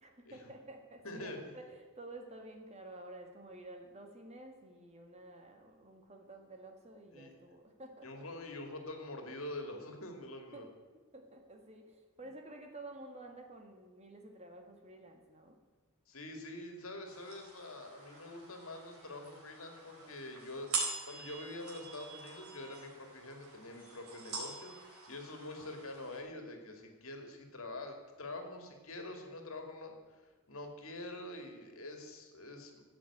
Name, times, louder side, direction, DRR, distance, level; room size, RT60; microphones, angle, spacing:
voice 1, 0.0-8.3 10.5-10.7 11.1-15.6, right 2 dB, 30° right, 4 dB, 1.7 m, -51 dB
voice 2, 1.0-1.4 7.1-7.3 8.0-10.7 16.1-30.2 30.5-32.8, left 2 dB, 75° left, 4 dB, 2.4 m, -46 dB
sound 1, 17.0-26.2, right 4 dB, 85° right, 4.3 m, -44 dB
14.0 x 7.9 x 8.6 m, 1.3 s
head